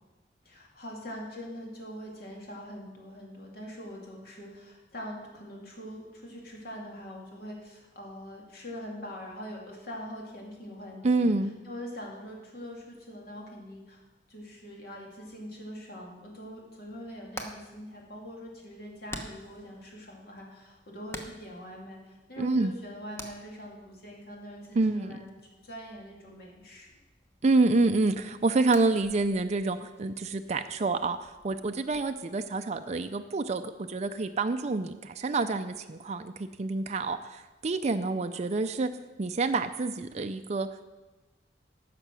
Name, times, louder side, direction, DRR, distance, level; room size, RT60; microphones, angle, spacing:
voice 1, 0.4-11.3 11.6-25.4 25.6-26.9 38.0-38.1, equal, 60° left, -1 dB, 2.6 m, -43 dB
voice 2, 11.0-11.5 22.4-22.8 24.8-25.2 27.4-38.9 39.2-40.9, right 3 dB, 40° right, 8 dB, 0.5 m, -28 dB
Hammer, 16.8-32.1, left 1 dB, 15° left, 1.0 m, -50 dB
14.5 x 6.0 x 6.1 m, 1.1 s
head